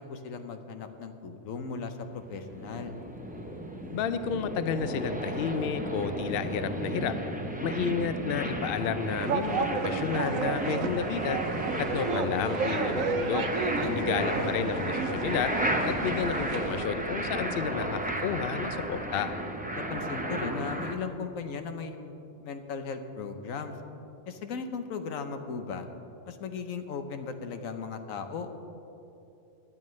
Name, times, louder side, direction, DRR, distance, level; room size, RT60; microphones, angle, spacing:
voice 1, 0.0-2.9 13.8-14.5 19.7-23.7 24.3-25.9 26.3-28.5, left 5 dB, 80° left, 7 dB, 1.2 m, -37 dB
sound 1, 2.0-20.9, right 1 dB, 10° right, 0.5 m, -33 dB
voice 2, 3.9-7.1 7.6-11.5 11.8-13.5 14.0-15.5 15.9-19.3, left 7 dB, 60° left, 11 dB, 0.7 m, -31 dB
sound 2, 9.2-16.9, right 5 dB, 90° right, 1.1 m, -32 dB
18.0 x 11.0 x 3.2 m, 2.8 s
omnidirectional pair, 1.4 m